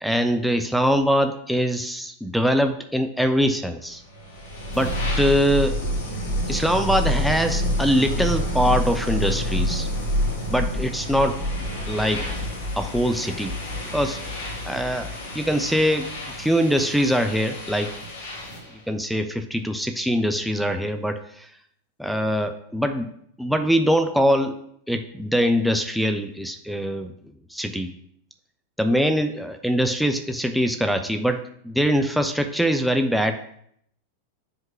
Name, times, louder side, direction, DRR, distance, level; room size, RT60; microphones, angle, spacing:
voice 1, 0.0-4.0 4.7-5.8 6.5-9.9 10.5-11.4 11.9-12.2 12.8-13.5 13.9-14.2 14.7-15.1 15.3-16.1 16.4-17.9 18.9-21.5 22.0-23.1 23.4-24.6 24.9-27.1 27.5-27.9 28.8-33.4, equal, ahead, 6 dB, 0.5 m, -23 dB
sound 1, 4.1-18.7, equal, 55° left, 1.7 m, -28 dB
5.2 x 3.7 x 5.7 m, 0.69 s
figure-of-eight pair, 90°, 0 cm